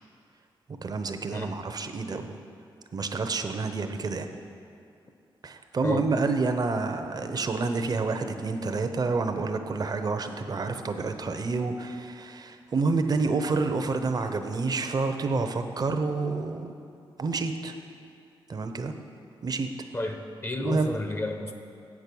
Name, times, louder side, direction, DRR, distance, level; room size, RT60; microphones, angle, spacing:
voice 1, 0.8-2.4 2.9-4.3 5.4-16.7 17.2-17.7 18.5-18.9 19.4-19.7 20.6-20.9, right 3 dB, 45° right, 7 dB, 0.7 m, -28 dB
voice 2, 5.8-6.1 19.9-21.6, left 2 dB, 30° left, 5 dB, 0.7 m, -32 dB
7.8 x 6.1 x 6.9 m, 2.5 s
cardioid pair, 70°, 9 cm